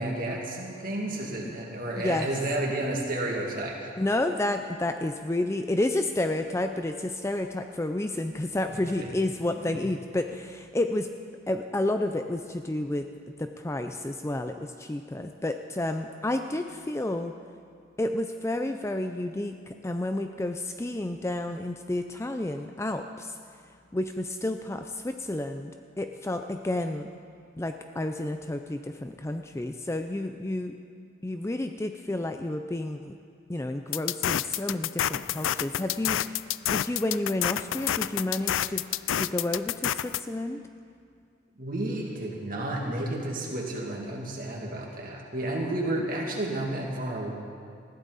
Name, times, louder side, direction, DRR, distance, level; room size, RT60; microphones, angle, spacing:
voice 1, 0.0-3.9 9.0-9.1 9.6-9.8 41.6-47.3, right 1 dB, 45° right, -1 dB, 2.4 m, -31 dB
voice 2, 1.9-2.3 4.0-11.1 11.5-13.1 13.4-17.3 18.0-23.4 23.9-27.1 27.6-30.7 31.2-33.2 33.5-38.8 39.2-40.6, left 1 dB, 15° left, 6 dB, 0.4 m, -30 dB
sound 1, 33.9-40.2, left 11 dB, 80° left, 0.4 m, -28 dB
20.5 x 14.5 x 4.1 m, 2.2 s
head